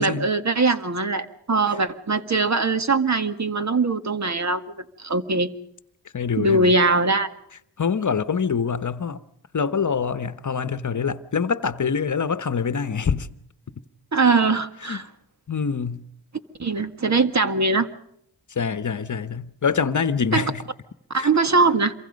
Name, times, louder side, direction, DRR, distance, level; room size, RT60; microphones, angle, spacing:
voice 1, 0.0-4.6 5.0-5.5 6.4-7.3 14.1-15.1 16.6-17.9 20.3-20.4 21.1-21.9, right 3 dB, 40° right, 1.9 m, -21 dB
voice 2, 6.1-6.7 7.8-9.2 9.5-13.3 14.8-15.0 15.5-16.0 18.5-20.6 21.1-21.3, left 6 dB, 45° left, 1.2 m, -25 dB
27.5 x 23.0 x 5.3 m
cardioid pair, 60°, 42 cm